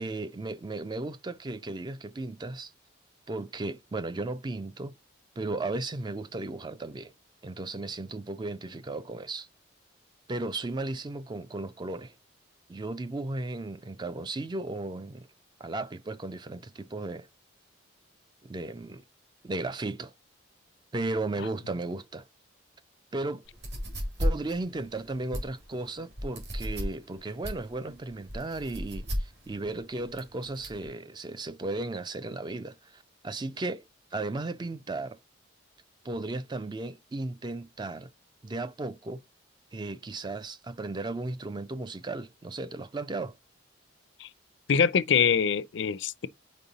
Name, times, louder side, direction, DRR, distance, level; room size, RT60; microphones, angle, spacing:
voice 1, 0.0-2.7 3.3-4.9 5.4-7.1 7.4-9.5 10.3-12.1 12.7-15.3 15.6-17.3 18.4-19.0 19.4-20.1 20.9-22.3 23.1-23.4 24.2-35.2 36.0-38.1 38.4-39.2 39.7-43.3, right 2 dB, 20° right, 0.3 m, -35 dB
sound 1, 23.4-30.9, equal, 55° right, 2.2 m, -34 dB
voice 2, 44.7-46.3, left 7 dB, 65° left, 0.5 m, -24 dB
5.3 x 4.5 x 3.9 m
head